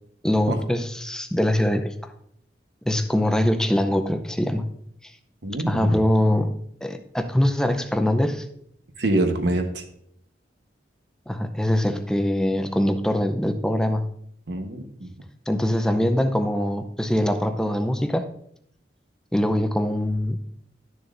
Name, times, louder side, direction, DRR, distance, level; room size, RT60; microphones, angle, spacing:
voice 1, 0.2-1.9 2.9-4.7 5.7-6.5 6.8-8.4 11.3-14.1 15.5-18.3 19.3-20.4, left 1 dB, 5° left, 7 dB, 0.5 m, -23 dB
voice 2, 5.4-6.0 9.0-9.8 14.5-15.1, right 1 dB, 70° right, 6 dB, 1.0 m, -25 dB
12.0 x 6.9 x 2.5 m, 0.71 s
head